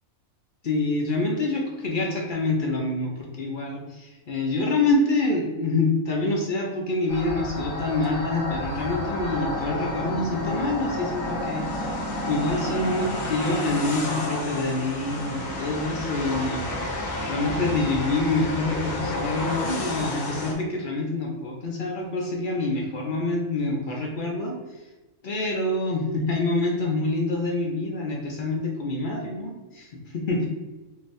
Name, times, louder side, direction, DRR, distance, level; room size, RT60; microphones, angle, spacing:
voice 1, 0.6-16.6 17.2-24.6 25.2-30.5, left 2 dB, 65° left, -1 dB, 0.5 m, -26 dB
sound 1, 7.1-20.5, left 1 dB, 90° left, 1.2 m, -30 dB
3.7 x 2.6 x 2.5 m, 1.2 s
omnidirectional pair, 1.4 m